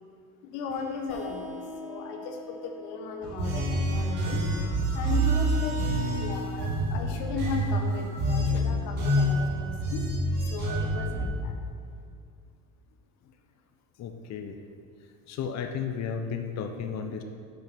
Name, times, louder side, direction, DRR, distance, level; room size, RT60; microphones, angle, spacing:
voice 1, 0.4-4.5 4.9-10.0 10.4-11.5, left 4 dB, 90° left, 4 dB, 1.0 m, -37 dB
sound 1, 0.7-6.1, left 1 dB, 20° left, 2.0 m, -45 dB
sound 2, 3.2-11.3, right 1 dB, 70° right, 1.9 m, -27 dB
voice 2, 14.0-14.6 15.3-17.2, left 6 dB, 50° left, 5 dB, 0.7 m, -33 dB
6.5 x 5.3 x 6.0 m, 2.2 s
cardioid pair, 105°, 35 cm